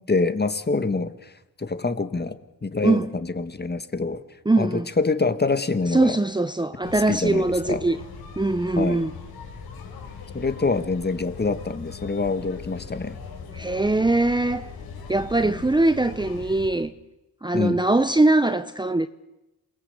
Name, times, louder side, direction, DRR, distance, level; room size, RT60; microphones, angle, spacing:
voice 1, 0.1-1.3 1.6-4.2 4.6-6.2 7.1-7.8 8.8-9.0 10.3-13.2 15.4-15.5 17.5-17.8, left 3 dB, 25° left, 1.9 m, -25 dB
voice 2, 4.5-4.9 5.9-8.0 8.4-9.1 13.5-14.7 15.1-16.9 17.4-19.1, right 2 dB, 10° right, 0.9 m, -21 dB
sound 1, 6.8-16.7, left 5 dB, 90° left, 6.2 m, -40 dB
28.0 x 22.0 x 8.3 m
cardioid pair, 90°, 36 cm